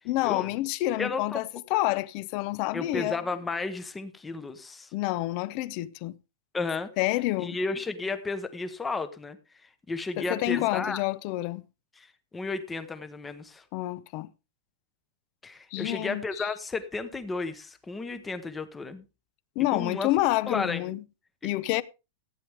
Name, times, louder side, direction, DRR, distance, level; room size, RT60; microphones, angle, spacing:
voice 1, 0.1-1.4 1.7-3.2 4.9-6.2 7.0-7.6 10.2-11.6 13.7-14.3 15.7-16.5 19.6-21.0 21.4-21.8, left 17 dB, 35° left, 0.6 m, -28 dB
voice 2, 1.0-1.4 2.7-4.9 6.5-6.9 7.4-9.4 9.6-11.0 12.0-12.1 12.3-13.6 15.4-19.0 19.7-20.1 20.5-20.8 21.4-21.5, left 3 dB, 10° left, 0.9 m, -33 dB
15.0 x 9.4 x 3.4 m
supercardioid pair, 170°, 0 cm